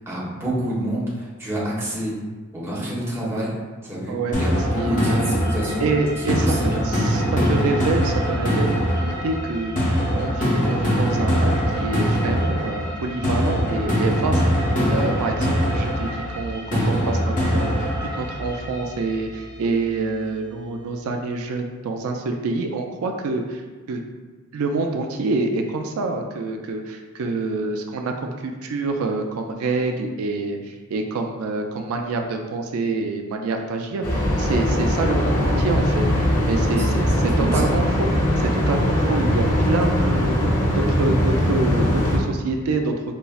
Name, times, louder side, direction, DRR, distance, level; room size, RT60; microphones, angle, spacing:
voice 1, 0.0-2.1 2.5-3.6 3.8-5.9 6.2-6.8 36.7-36.9 37.1-37.7, right 1 dB, 10° right, -7 dB, 0.9 m, -27 dB
sound 1, 4.3-19.3, equal, 40° left, 0.9 m, -23 dB
voice 2, 4.8-5.2 5.8-6.5 6.8-14.4 14.9-23.6 23.9-24.0 24.5-38.1 38.4-42.9, right 3 dB, 85° right, 3 dB, 0.3 m, -26 dB
sound 2, 34.0-42.2, equal, 85° left, 0.9 m, -20 dB
5.4 x 2.0 x 2.3 m, 1.4 s
head